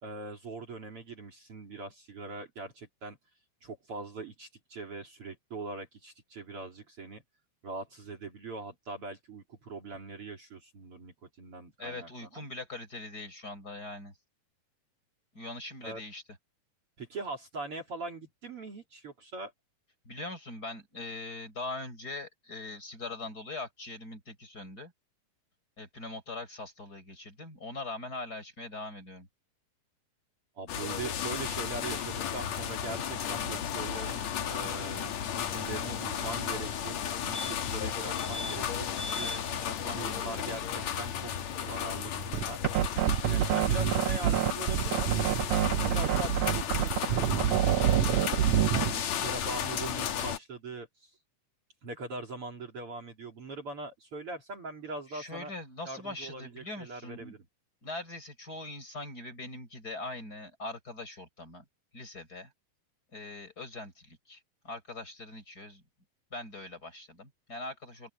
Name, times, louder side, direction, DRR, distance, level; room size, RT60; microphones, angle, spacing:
voice 1, 0.0-3.2 3.6-7.2 7.6-12.4 15.8-16.0 17.0-19.5 30.6-39.3 39.9-42.6 43.3-48.5 48.9-51.1 51.8-55.5 55.9-57.4, right 3 dB, 45° right, 3.7 m, -41 dB
voice 2, 11.8-14.1 15.3-16.2 20.1-24.9 25.8-29.3 39.2-40.5 48.7-49.1 55.1-57.3 57.8-61.7 61.9-62.5 63.1-65.8 66.3-68.1, left 2 dB, 25° left, 5.6 m, -42 dB
sound 1, 30.7-50.4, left 9 dB, 60° left, 2.6 m, -34 dB
sound 2, 38.1-38.6 38.9-39.4 41.8-41.9 42.1-42.2, left 2 dB, ahead, 7.3 m, -39 dB
sound 3, 42.3-49.0, right 11 dB, 75° right, 1.6 m, -26 dB
open air
omnidirectional pair, 3.9 m